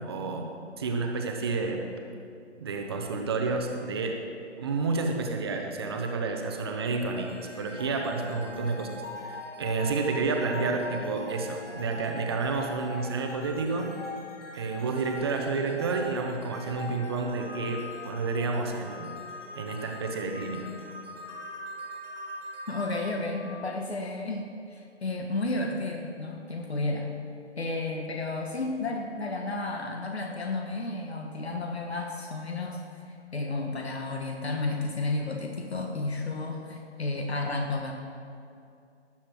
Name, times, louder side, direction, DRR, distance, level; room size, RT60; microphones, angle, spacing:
voice 1, 0.0-1.8 2.6-4.2 4.6-8.9 9.2-14.0 14.5-19.1 19.5-20.7, right 3 dB, 20° right, 3 dB, 0.9 m, -30 dB
sound 1, 7.2-24.3, left 2 dB, 85° left, 2.8 m, -42 dB
voice 2, 22.7-27.1 27.6-32.8 33.0-37.9, left 2 dB, 60° left, 2 dB, 1.5 m, -32 dB
19.0 x 7.4 x 4.6 m, 2.5 s
figure-of-eight pair, 150°, 36 cm